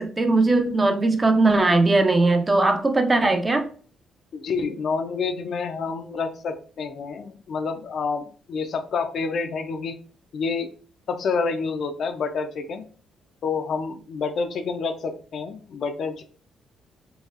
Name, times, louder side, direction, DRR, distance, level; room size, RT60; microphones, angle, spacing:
voice 1, 0.0-3.7, right 2 dB, 25° right, 6 dB, 0.5 m, -19 dB
voice 2, 4.3-10.0 10.3-10.7 11.1-12.9 13.4-16.2, left 5 dB, 60° left, 7 dB, 0.4 m, -28 dB
4.0 x 2.3 x 2.4 m, 0.41 s
cardioid pair, 90°, 0 cm